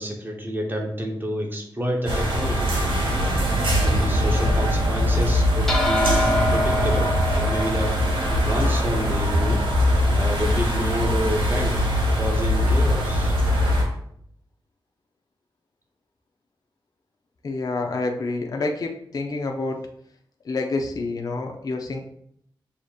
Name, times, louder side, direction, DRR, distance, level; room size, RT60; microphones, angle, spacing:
voice 1, 0.0-2.7 3.7-8.0 8.4-9.6 10.1-11.9 12.2-13.4, equal, 25° right, 1 dB, 0.8 m, -29 dB
sound 1, 2.1-13.8, equal, 70° right, 1.3 m, -22 dB
sound 2, 5.7-10.3, equal, 5° left, 0.9 m, -27 dB
voice 2, 17.4-19.8 20.4-22.0, left 3 dB, 45° left, 2 dB, 0.5 m, -28 dB
6.4 x 2.8 x 2.4 m, 0.70 s
wide cardioid pair, 90°, 9 cm